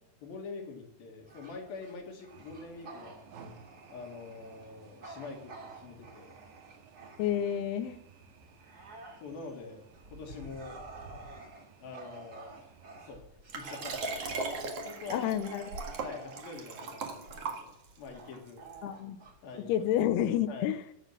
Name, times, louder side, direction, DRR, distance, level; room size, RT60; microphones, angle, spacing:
voice 1, 0.2-3.2 3.9-6.4 9.2-9.8 10.1-10.8 11.8-12.7 13.0-13.3 13.5-14.2 14.8-15.3 16.0-18.6 19.4-19.8 20.5-20.7, left 4 dB, 60° left, 2 dB, 3.3 m, -45 dB
Bark / Growling, 1.3-7.8 8.3-20.2, right 2 dB, 30° right, 2.0 m, -50 dB
sound 1, 2.3-13.1, right 5 dB, 70° right, 3.5 m, -56 dB
voice 2, 7.2-8.0 15.1-15.7 18.8-19.2 19.7-20.8, left 11 dB, 75° left, 13 dB, 2.5 m, -29 dB
Liquid, 13.5-18.1 18.7-18.8, right 3 dB, 55° right, 1.9 m, -38 dB
13.5 x 7.3 x 7.3 m, 0.79 s
omnidirectional pair, 5.1 m